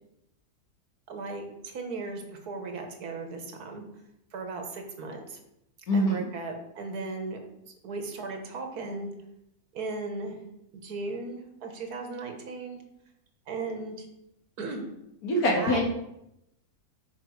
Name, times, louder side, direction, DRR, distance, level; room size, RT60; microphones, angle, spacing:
voice 1, 1.1-3.8 4.3-5.4 5.9-7.4 7.8-9.1 9.7-10.4 10.7-12.8 13.5-14.1 14.6-14.8 15.6-15.8, right 3 dB, 85° right, 4 dB, 1.6 m, -36 dB
voice 2, 5.9-6.3 15.2-15.8, left 1 dB, 70° left, 0 dB, 1.9 m, -24 dB
6.0 x 5.3 x 4.7 m, 0.84 s
omnidirectional pair, 1.6 m